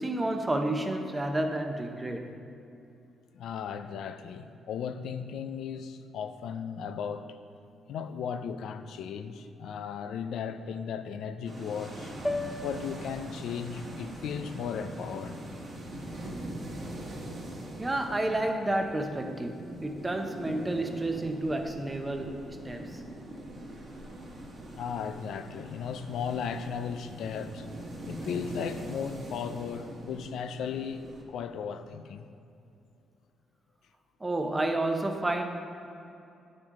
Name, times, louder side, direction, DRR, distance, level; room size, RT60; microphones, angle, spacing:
voice 1, 0.0-2.4 17.8-23.0 34.2-35.4, right 1 dB, 20° right, 5 dB, 0.8 m, -30 dB
voice 2, 3.3-7.4 7.9-12.1 12.6-15.4 24.8-27.7 28.1-32.3, left 7 dB, 75° left, 9 dB, 0.4 m, -36 dB
sound 1, 11.4-31.2, right 1 dB, 45° right, 1.6 m, -42 dB
sound 2, 12.2-16.5, left 1 dB, 5° left, 0.3 m, -40 dB
9.8 x 6.3 x 3.8 m, 2.7 s
cardioid pair, 90°, 0 cm